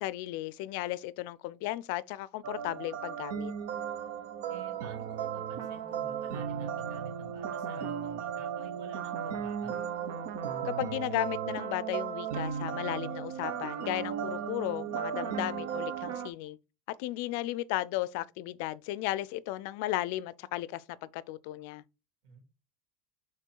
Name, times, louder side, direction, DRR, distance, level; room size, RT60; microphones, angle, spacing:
voice 1, 0.0-3.5 10.6-16.6 17.0-21.8, left 16 dB, 60° left, 0.4 m, -35 dB
sound 1, 2.4-16.3, right 8 dB, 90° right, 1.0 m, -35 dB
voice 2, 4.5-9.7 22.2-22.4, right 4 dB, 60° right, 2.7 m, -50 dB
6.8 x 3.5 x 4.6 m
cardioid pair, 175°, 0 cm